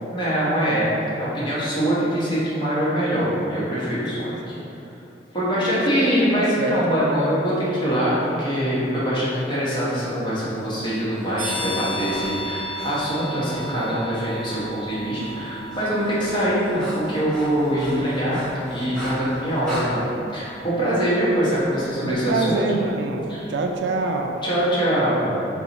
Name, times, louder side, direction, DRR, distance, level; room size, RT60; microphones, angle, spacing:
voice 1, 0.1-0.9 1.1-4.5 5.3-18.4 18.7-22.6 23.3-23.5 24.4-25.5, equal, 25° left, -10 dB, 1.1 m, -23 dB
voice 2, 6.3-6.8 22.1-24.4, right 3 dB, 70° right, 3 dB, 0.3 m, -26 dB
Breathing, 10.5-13.7 14.4-14.6 14.9-19.9, equal, 5° left, 1.0 m, -39 dB
sound 1, 11.4-23.9, right 1 dB, 45° right, 1.0 m, -37 dB
4.3 x 2.3 x 3.9 m, 2.9 s
head